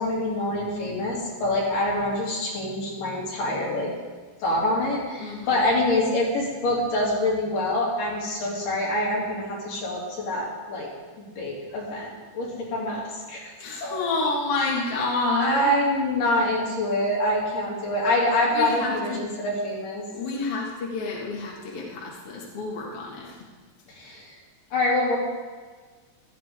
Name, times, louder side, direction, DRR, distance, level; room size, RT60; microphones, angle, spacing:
voice 1, 0.0-3.9 4.4-10.9 11.4-13.5 13.8-14.1 15.4-19.1 19.4-20.0 23.9-24.3 24.7-25.2, left 1 dB, 75° left, -4 dB, 4.5 m, -25 dB
voice 2, 5.2-5.6 13.6-15.7 18.5-19.2 20.1-23.4, left 3 dB, 50° left, -3 dB, 2.6 m, -29 dB
16.0 x 13.5 x 3.7 m, 1.4 s
omnidirectional pair, 3.9 m